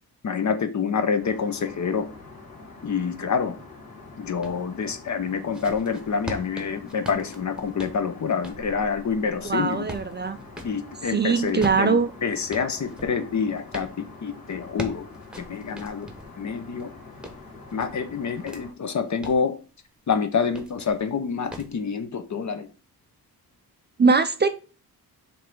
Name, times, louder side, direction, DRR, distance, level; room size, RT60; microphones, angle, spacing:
voice 1, 0.2-2.1 2.8-3.6 4.2-9.9 10.6-13.9 14.2-15.1 15.4-16.1 16.4-16.9 17.7-19.5 20.1-22.7, left 6 dB, 50° left, 9 dB, 0.8 m, -27 dB
Aircraft, 1.2-18.7, left 3 dB, 75° left, 3.3 m, -45 dB
sound 1, 4.4-4.6 5.2-10.8 11.4-13.9 14.5-16.3 16.8-18.6 19.0-19.5 20.4-21.0 21.5-21.8, right 1 dB, ahead, 1.0 m, -40 dB
voice 2, 9.5-10.4 11.1-12.1 24.0-24.5, right 4 dB, 30° right, 10 dB, 0.4 m, -21 dB
5.5 x 3.4 x 5.3 m, 0.36 s
wide cardioid pair, 140°, 36 cm